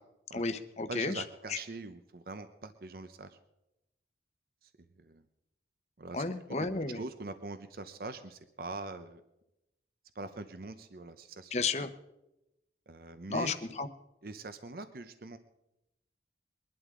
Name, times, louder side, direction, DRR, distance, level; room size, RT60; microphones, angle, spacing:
voice 1, 0.3-1.2 1.5-1.6 6.1-7.0 11.5-11.9 13.3-13.9, left 3 dB, 35° left, 9 dB, 0.9 m, -33 dB
voice 2, 0.9-3.4 4.6-4.7 5.0-5.2 6.0-9.2 10.1-11.6 12.9-13.6 14.2-15.4, right 3 dB, 55° right, 10 dB, 0.7 m, -43 dB
22.5 x 11.5 x 3.7 m, 0.90 s
head